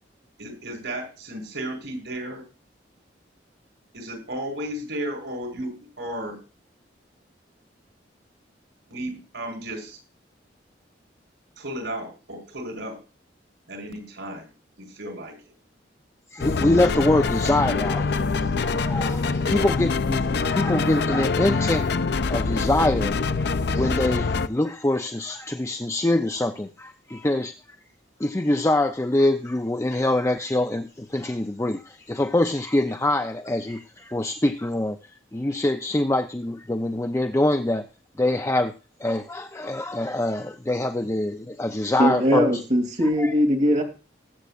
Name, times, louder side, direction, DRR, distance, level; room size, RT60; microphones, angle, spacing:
voice 1, 0.4-2.4 3.9-6.4 8.9-10.0 11.6-13.0 13.7-14.5 14.8-15.4 19.5-19.7, right 1 dB, 80° right, 4 dB, 4.8 m, -34 dB
voice 2, 16.3-18.1 18.6-21.9 22.3-23.1 23.7-27.5 28.2-35.0 35.3-37.9 38.2-38.7 39.0-42.5 43.0-43.3, left 1 dB, 15° left, 7 dB, 0.5 m, -24 dB
sound 1, 16.4-24.5, left 4 dB, 65° left, 0.5 m, -24 dB
voice 3, 42.0-43.8, equal, 40° right, 2 dB, 3.0 m, -20 dB
20.0 x 8.2 x 2.5 m, 0.33 s
head